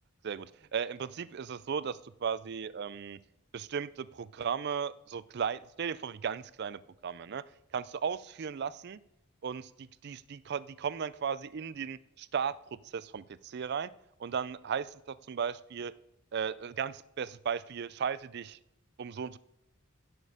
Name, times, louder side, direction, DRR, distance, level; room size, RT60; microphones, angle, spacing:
voice 1, 0.2-3.2 3.5-7.4 7.7-9.0 9.4-13.9 14.2-15.9 16.3-18.6 19.0-19.4, right 7 dB, 55° right, 18 dB, 0.4 m, -36 dB
15.5 x 6.4 x 4.9 m, 0.89 s
head